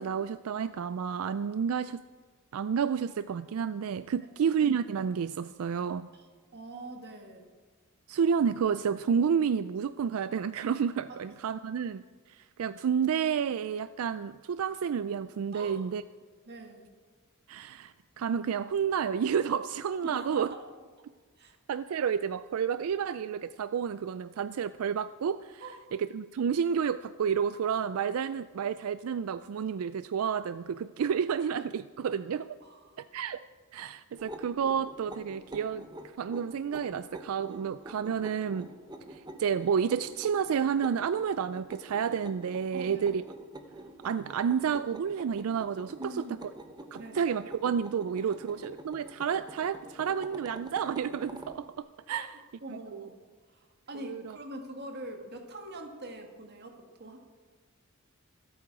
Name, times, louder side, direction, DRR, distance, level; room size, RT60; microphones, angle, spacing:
voice 1, 0.0-2.0 2.5-6.1 8.1-12.0 12.3-16.0 17.5-20.5 21.7-25.6 25.9-32.6 33.0-33.4 33.7-35.9 36.2-38.7 39.1-43.2 44.0-46.0 46.9-52.3 52.7-53.1 53.9-54.4, right 7 dB, 85° right, 14 dB, 0.4 m, -30 dB
voice 2, 6.5-7.5 11.1-11.2 15.5-15.8 16.5-16.9 20.0-20.6 21.4-21.6 25.6-25.9 32.6-33.1 42.7-43.1 45.9-46.4 47.0-47.3 48.2-48.4 52.1-53.2 53.5-57.3, right 1 dB, 50° right, 4 dB, 1.9 m, -44 dB
sound 1, 34.2-51.6, right 1 dB, 20° right, 0.9 m, -47 dB
25.0 x 8.6 x 4.9 m, 1.4 s
head